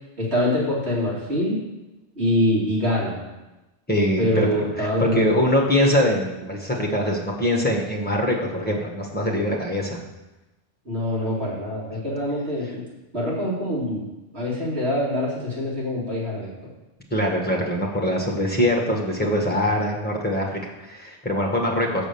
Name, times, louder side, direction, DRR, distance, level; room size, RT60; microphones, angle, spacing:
voice 1, 0.2-1.6 2.2-3.2 4.2-5.4 10.8-12.8 13.1-14.1 14.3-16.5, left 1 dB, 65° right, -6 dB, 2.7 m, -24 dB
voice 2, 3.9-10.0 17.1-22.1, left 1 dB, 10° left, -1 dB, 1.3 m, -23 dB
6.4 x 4.9 x 6.9 m, 1.0 s
omnidirectional pair, 1.2 m